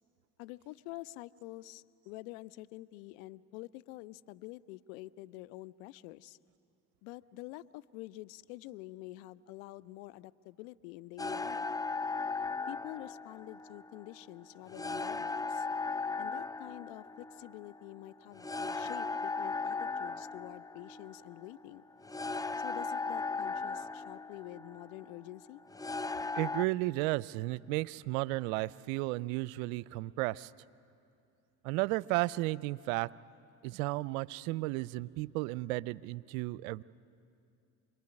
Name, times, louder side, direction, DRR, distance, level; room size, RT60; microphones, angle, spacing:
voice 1, 0.4-6.4 7.0-11.7 12.7-15.7 16.2-21.8 22.6-25.6, left 18 dB, 85° left, 21 dB, 0.6 m, -47 dB
sound 1, 11.2-26.6, left 4 dB, 10° left, 0.6 m, -37 dB
voice 2, 26.3-30.5 31.6-33.1 33.6-36.8, right 20 dB, 85° right, 21 dB, 0.6 m, -33 dB
28.0 x 21.5 x 9.7 m, 2.5 s
hypercardioid pair, 60°, 41 cm